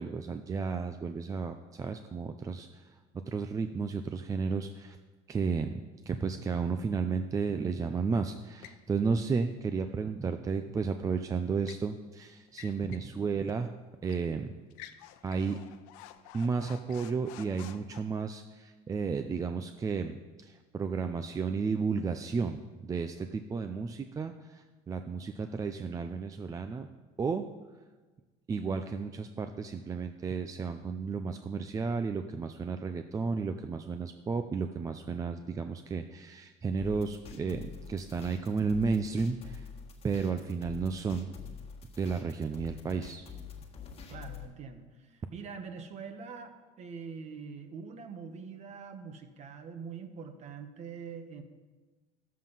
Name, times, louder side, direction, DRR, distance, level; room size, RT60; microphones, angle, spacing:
voice 1, 0.0-2.9 3.3-5.0 5.3-5.8 6.1-13.7 14.0-14.5 15.2-15.6 16.3-26.9 27.2-27.5 28.5-39.7 40.0-41.3 42.0-43.2, right 5 dB, 20° right, 8 dB, 0.5 m, -33 dB
sound 1, 8.6-8.9 11.1-11.9 12.5-13.1 13.5-13.6 14.1-14.3 14.7-18.0, left 12 dB, 90° left, 0.7 m, -51 dB
sound 2, 36.8-44.5, left 7 dB, 35° left, 1.7 m, -46 dB
voice 2, 44.1-51.4, right 5 dB, 40° right, 8 dB, 1.2 m, -44 dB
11.5 x 7.5 x 5.5 m, 1.3 s
cardioid pair, 130°, 17 cm